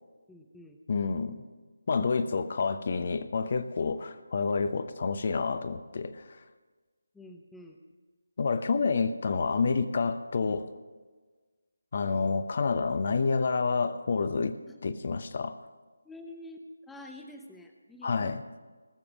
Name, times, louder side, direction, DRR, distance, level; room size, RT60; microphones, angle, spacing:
voice 1, 0.3-0.8 7.1-7.8 14.7-14.8 16.0-16.6 16.9-18.3, left 1 dB, 5° left, 2 dB, 0.7 m, -47 dB
voice 2, 0.9-1.4 1.9-6.2 8.4-10.7 11.9-14.6 14.8-15.6 18.0-18.4, left 4 dB, 45° left, 12 dB, 0.8 m, -28 dB
20.0 x 7.0 x 6.1 m, 1.4 s
figure-of-eight pair, 165°, 0 cm